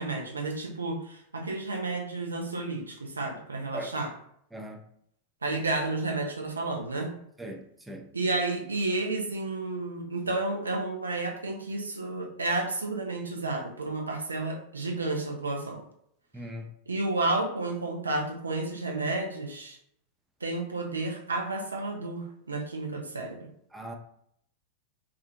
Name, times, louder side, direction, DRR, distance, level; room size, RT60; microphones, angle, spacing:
voice 1, 0.0-4.1 5.4-7.1 8.1-15.8 16.9-19.8 20.4-23.5, right 2 dB, 75° right, 2 dB, 0.5 m, -31 dB
voice 2, 4.5-4.8 7.4-8.1 16.3-16.7 23.7-24.0, right 1 dB, 5° right, 2 dB, 0.4 m, -39 dB
2.4 x 2.4 x 2.7 m, 0.71 s
figure-of-eight pair, 90°, 0 cm